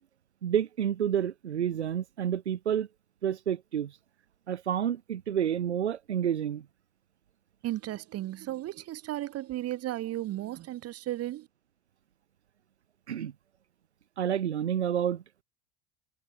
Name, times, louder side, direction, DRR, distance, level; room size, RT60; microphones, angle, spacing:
voice 1, 0.4-2.9 3.2-4.0 4.5-6.6 13.1-13.3 14.2-15.2, right 9 dB, 85° right, 1.2 m, -29 dB
voice 2, 7.6-11.5, right 14 dB, 45° right, 7.8 m, -35 dB
hypercardioid pair, 80°, 33 cm